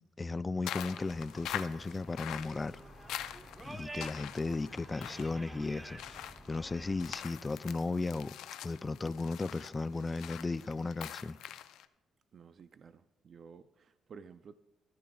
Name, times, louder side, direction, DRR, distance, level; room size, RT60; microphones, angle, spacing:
voice 1, 0.2-2.8 3.6-6.0 6.5-8.3 8.6-11.4, left 3 dB, 25° left, 0.4 m, -35 dB
sound 1, 0.6-11.9, left 11 dB, 85° left, 0.5 m, -45 dB
sound 2, 0.8-7.1, right 2 dB, 15° right, 1.0 m, -50 dB
voice 2, 12.3-14.5, right 6 dB, 50° right, 0.4 m, -53 dB
19.5 x 14.0 x 2.4 m
cardioid pair, 90°, 0 cm